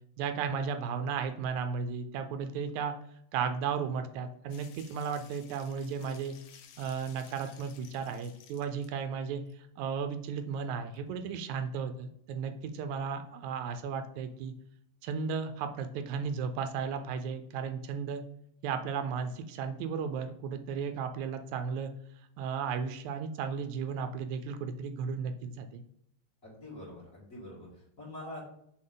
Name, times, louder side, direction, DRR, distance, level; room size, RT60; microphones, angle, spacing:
voice 1, 0.2-3.0 3.3-6.4 6.8-14.5 15.0-18.2 18.6-21.9 22.4-25.8, right 6 dB, 80° right, 8 dB, 1.9 m, -35 dB
sound 1, 4.5-9.0 9.5-9.6 10.6-10.7 10.9-11.0, left 8 dB, 75° left, 1.5 m, -56 dB
voice 2, 26.4-28.4, left 1 dB, 30° left, -5 dB, 2.2 m, -45 dB
6.3 x 4.0 x 3.8 m, 0.71 s
omnidirectional pair, 3.3 m